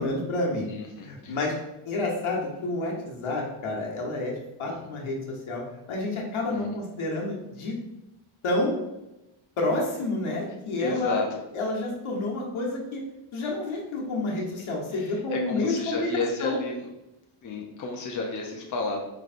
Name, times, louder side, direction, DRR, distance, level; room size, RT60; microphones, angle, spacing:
voice 1, 0.0-0.7 1.0-1.5 1.8-4.3 4.6-5.6 5.9-7.7 8.4-8.8 9.6-11.2 11.5-13.0 13.3-16.1 16.4-16.6, left 2 dB, 75° left, -2 dB, 1.3 m, -29 dB
voice 2, 0.7-1.4 4.7-4.8 6.5-6.8 10.8-11.4 14.6-16.9 17.4-19.0, left 3 dB, 40° left, 0 dB, 0.7 m, -32 dB
5.5 x 3.4 x 2.5 m, 0.96 s
cardioid pair, 85°, 50 cm